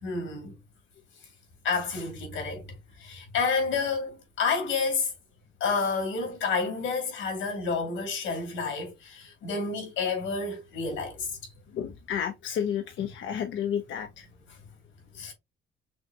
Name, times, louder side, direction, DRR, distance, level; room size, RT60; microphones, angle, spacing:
voice 1, 0.0-0.5 1.6-2.7 3.0-5.1 5.6-11.5 14.5-14.6 15.1-15.3, left 4 dB, 85° left, 2.6 m, -30 dB
voice 2, 11.7-14.2, left 8 dB, 70° left, 0.7 m, -31 dB
6.1 x 2.2 x 2.8 m
cardioid pair, 90°, 20 cm